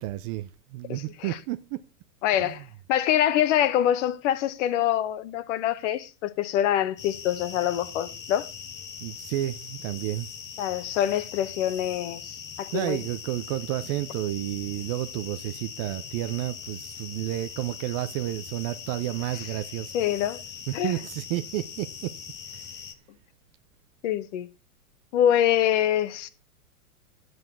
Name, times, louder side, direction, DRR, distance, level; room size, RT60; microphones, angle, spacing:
voice 1, 0.0-1.8 2.4-2.7 9.0-10.3 12.7-19.9 20.7-22.2 22.5-22.8, right 15 dB, 25° right, 0.4 m, -31 dB
voice 2, 0.9-1.4 2.2-8.5 10.6-13.0 19.4-19.5 19.9-20.4 20.7-21.0 24.0-24.5 25.1-26.3, left 11 dB, 55° left, 1.2 m, -25 dB
sound 1, 7.0-22.9, left 7 dB, 25° left, 1.2 m, -41 dB
10.5 x 7.9 x 4.6 m
hypercardioid pair, 115°, 45 cm